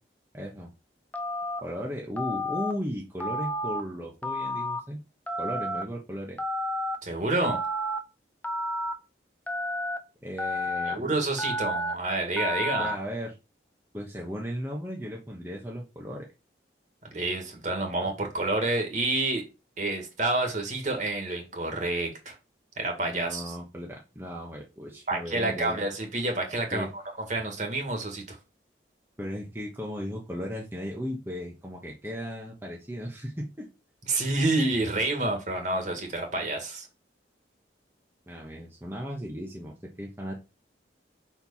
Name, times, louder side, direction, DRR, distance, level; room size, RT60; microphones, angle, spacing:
voice 1, 0.3-0.7 1.6-5.0 5.4-6.4 10.2-11.1 12.8-13.3 13.9-16.3 23.0-25.8 26.7-26.9 29.2-33.7 36.4-36.5 38.3-40.3, equal, 15° right, 1.1 m, -36 dB
Telephone, 1.1-1.6 2.2-2.7 3.2-3.8 4.2-4.8 5.3-5.8 6.4-7.0 7.4-8.0 8.4-8.9 9.5-10.0 10.4-10.9 11.4-11.9 12.4-12.9, left 1 dB, 10° left, 0.6 m, -30 dB
voice 2, 7.0-7.6 10.9-12.9 17.1-19.4 19.8-22.4 22.8-23.5 25.1-27.0 27.3-28.4 34.1-36.9, right 2 dB, 40° right, 1.9 m, -28 dB
5.6 x 4.6 x 5.6 m
head